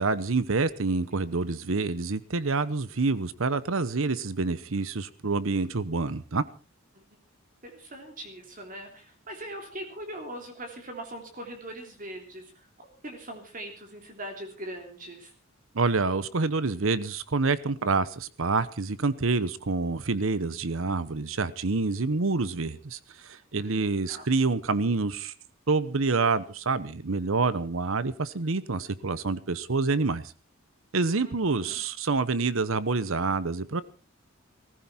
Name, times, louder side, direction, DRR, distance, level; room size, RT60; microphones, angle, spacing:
voice 1, 0.0-6.4 15.7-25.3 25.7-30.2 30.9-33.8, right 3 dB, 75° right, 0.9 m, -27 dB
voice 2, 7.6-12.7 13.0-15.3 23.5-24.3 31.2-31.8, right 1 dB, 40° right, 3.2 m, -41 dB
19.5 x 15.0 x 4.4 m
head